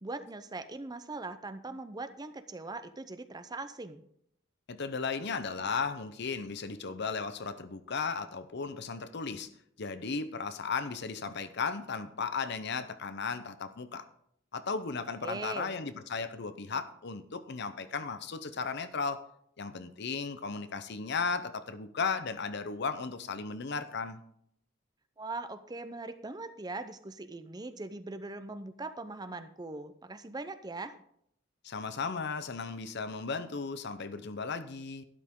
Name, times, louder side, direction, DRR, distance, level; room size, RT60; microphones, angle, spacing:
voice 1, 0.0-4.0 15.2-15.7 25.2-31.0, right 3 dB, 20° right, 11 dB, 0.6 m, -41 dB
voice 2, 4.7-9.5 9.8-14.1 14.5-19.2 19.6-24.2 31.6-35.0, left 5 dB, 60° left, 11 dB, 0.8 m, -35 dB
12.0 x 10.5 x 3.7 m, 0.70 s
head